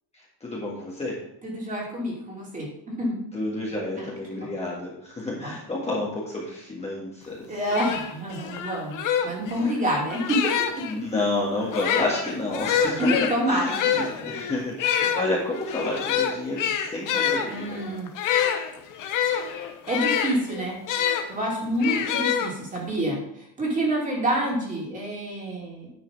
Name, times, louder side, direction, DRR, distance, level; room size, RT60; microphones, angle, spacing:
voice 1, 0.1-1.2 3.3-7.5 10.9-13.1 13.5-17.8 22.0-22.1, left 2 dB, 15° left, -5 dB, 1.8 m, -30 dB
voice 2, 1.4-3.2 4.0-4.1 5.4-5.5 7.5-10.8 13.0-14.4 17.5-18.1 19.9-20.8 21.3-25.9, right 1 dB, 15° right, -3 dB, 2.8 m, -28 dB
sound 1, 7.3-7.4 7.7-10.9 11.6-21.3 21.8-22.9, left 8 dB, 45° left, 1.0 m, -26 dB
9.8 x 5.6 x 5.3 m, 0.75 s
cardioid pair, 170°, 44 cm